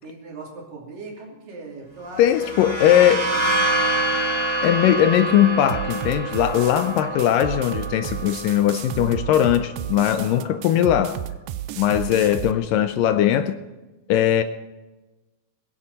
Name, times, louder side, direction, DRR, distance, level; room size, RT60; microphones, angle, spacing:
voice 1, 0.0-4.0 10.0-11.1, right 3 dB, 65° right, -1 dB, 4.6 m, -40 dB
voice 2, 2.2-3.3 4.6-11.2 11.8-13.6 14.1-14.4, left 11 dB, 80° left, 10 dB, 2.1 m, -19 dB
sound 1, 2.2-9.8, right 2 dB, 35° right, 0.4 m, -27 dB
sound 2, 5.7-12.5, right 12 dB, 80° right, 2.0 m, -33 dB
22.5 x 10.5 x 4.1 m, 1.1 s
omnidirectional pair, 4.2 m